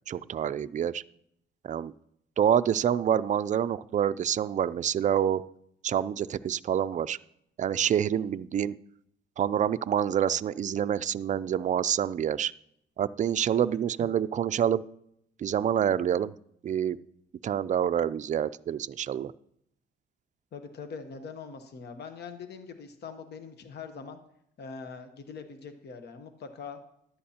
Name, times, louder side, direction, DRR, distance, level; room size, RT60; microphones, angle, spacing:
voice 1, 0.1-1.0 1.6-1.9 2.4-5.4 5.8-7.2 7.6-8.7 9.4-12.5 13.0-14.8 15.4-16.3 16.6-17.0 17.4-19.3, right 9 dB, 40° right, 14 dB, 0.4 m, -27 dB
voice 2, 20.5-24.2 24.6-26.8, left 5 dB, 55° left, 7 dB, 1.0 m, -42 dB
14.0 x 11.0 x 2.8 m, 0.74 s
cardioid pair, 90°, 20 cm